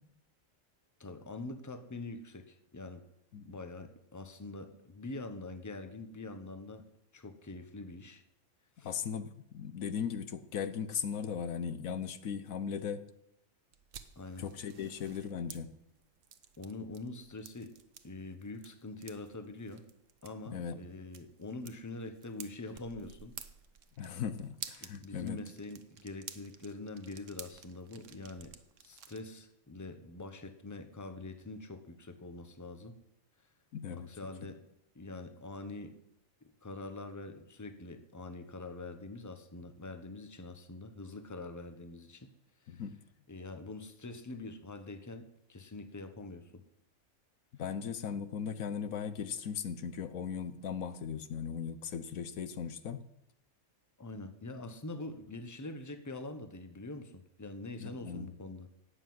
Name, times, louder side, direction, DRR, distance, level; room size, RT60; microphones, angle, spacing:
voice 1, 1.0-3.0 3.4-6.9 7.1-8.2 8.8-8.9 14.2-14.5 14.8-14.9 16.6-17.7 18.0-19.8 20.2-23.4 24.8-28.5 28.8-33.0 33.9-34.6 34.9-36.0 36.6-42.3 42.6-42.8 43.3-46.6 54.0-57.1 57.4-58.7, left 2 dB, 15° left, 9 dB, 1.0 m, -44 dB
voice 2, 8.8-13.1 14.4-15.7 20.5-20.8 24.0-25.4 33.7-34.1 34.4-34.5 42.7-42.9 47.5-53.0 57.8-58.3, left 7 dB, 80° left, 12 dB, 1.3 m, -38 dB
sound 1, 13.7-29.2, right 8 dB, 65° right, 1.3 m, -52 dB
11.5 x 8.2 x 9.5 m, 0.80 s
omnidirectional pair, 1.4 m